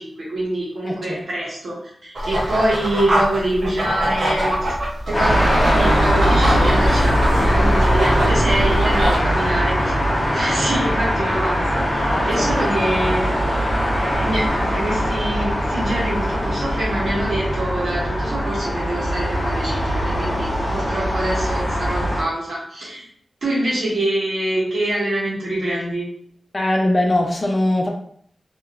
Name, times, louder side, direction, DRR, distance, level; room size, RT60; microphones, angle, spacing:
voice 1, 0.0-4.7 5.1-9.9 10.3-23.0 23.4-26.1, right 1 dB, 80° right, -7 dB, 1.4 m, -25 dB
voice 2, 0.8-1.2 9.1-9.4 12.1-12.7 26.5-27.9, left 1 dB, 35° left, 2 dB, 0.4 m, -22 dB
sound 1, 2.1-9.2, equal, 65° right, 0.7 m, -23 dB
sound 2, 5.1-22.2, equal, 15° left, 0.9 m, -21 dB
2.9 x 2.8 x 2.4 m, 0.64 s
wide cardioid pair, 80°, 0 cm